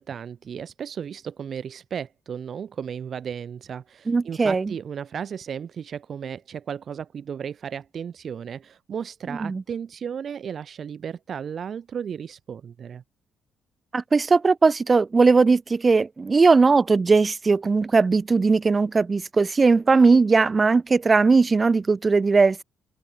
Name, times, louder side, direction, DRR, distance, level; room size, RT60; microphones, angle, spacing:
voice 1, 0.0-13.0, right 7 dB, 55° right, 2.2 m, -34 dB
voice 2, 4.1-4.7 9.3-9.6 13.9-22.6, right 4 dB, 30° right, 1.1 m, -19 dB
cardioid pair, 90°, 0 cm